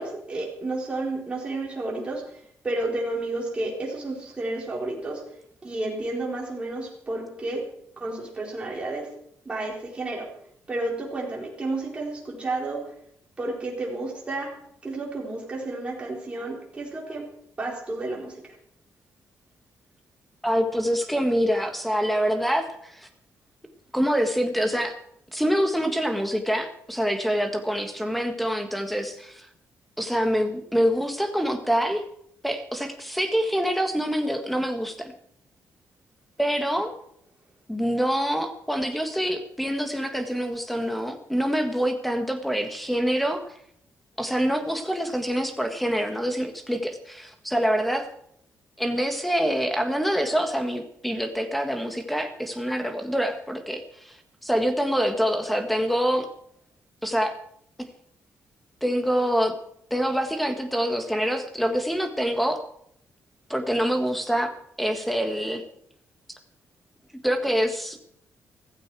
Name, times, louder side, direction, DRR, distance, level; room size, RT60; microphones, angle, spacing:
voice 1, 0.0-5.2 5.6-7.7 8.0-9.1 9.4-10.3 10.7-12.9 13.4-14.6 14.8-17.3 17.6-18.4, right 2 dB, 20° right, -2 dB, 4.1 m, -31 dB
voice 2, 20.4-23.1 23.9-24.9 25.3-29.5 30.0-32.0 32.4-35.1 36.4-36.9 37.7-43.4 44.2-48.1 48.8-54.2 54.4-56.3 57.0-57.3 58.8-59.5 59.9-62.6 63.5-64.5 64.8-65.6 67.2-68.0, equal, ahead, 6 dB, 1.6 m, -25 dB
15.5 x 15.0 x 4.8 m, 0.69 s
wide cardioid pair, 175°, 6 cm